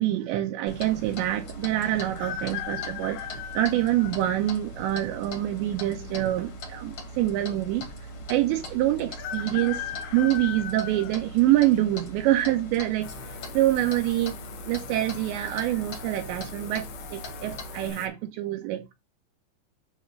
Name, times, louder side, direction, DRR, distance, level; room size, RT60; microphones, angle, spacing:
voice 1, 0.0-7.9 8.3-14.3 14.7-18.9, right 14 dB, 80° right, 2.9 m, -26 dB
Clock, 0.7-17.9, equal, 45° left, 1.9 m, -40 dB
sound 1, 2.2-4.2 4.9-5.0 6.1-6.7 7.0-7.1 7.3-7.4 9.2-11.8 12.3-12.7 13.8-14.2 14.5-14.6 15.1-15.5 15.9-16.1, left 10 dB, 85° left, 2.0 m, -37 dB
sound 2, 13.0-18.1, left 8 dB, 65° left, 3.2 m, -44 dB
9.7 x 3.5 x 5.2 m
omnidirectional pair, 5.5 m